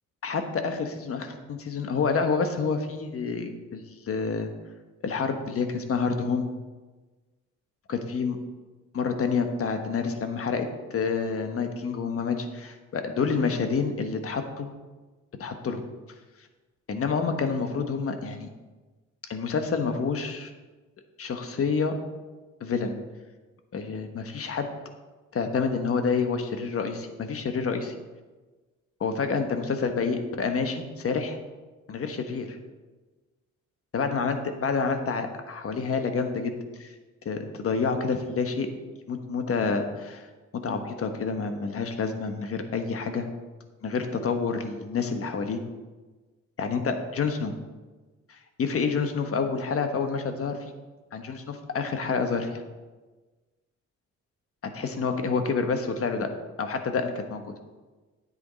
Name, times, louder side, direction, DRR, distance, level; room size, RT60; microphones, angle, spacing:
voice 1, 0.2-4.5 5.0-6.5 7.9-8.4 8.9-14.7 15.4-15.8 16.9-18.5 19.3-20.5 21.2-21.9 22.6-22.9 23.7-24.7 25.3-27.9 29.0-31.4 31.9-32.6 33.9-36.9 37.2-38.7 39.1-40.3 40.5-43.3 43.8-45.6 46.6-47.5 48.3-50.6 51.1-52.6 54.6-56.3 56.6-57.5, left 5 dB, 50° left, 6 dB, 1.2 m, -28 dB
9.9 x 8.0 x 4.0 m, 1.3 s
cardioid pair, 90°, 30 cm